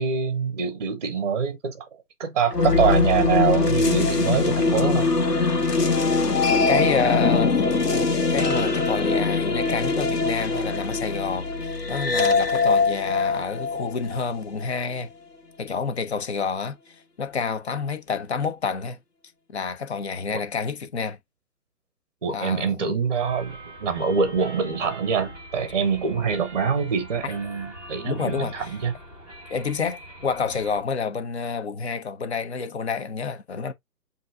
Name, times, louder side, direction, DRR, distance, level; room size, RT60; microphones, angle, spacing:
voice 1, 0.0-1.9 2.2-5.1 20.3-20.4 22.2-28.9, right 6 dB, 30° right, 0.7 m, -25 dB
sound 1, 2.5-14.7, left 4 dB, 80° left, 1.4 m, -22 dB
voice 2, 6.3-7.5 7.9-15.1 15.6-19.0 19.5-21.2 22.3-22.9 28.0-28.5 29.5-33.7, left 5 dB, 45° left, 0.8 m, -29 dB
sound 2, 23.1-30.8, right 1 dB, 10° left, 0.6 m, -43 dB
7.4 x 2.7 x 2.5 m
figure-of-eight pair, 140°, 47 cm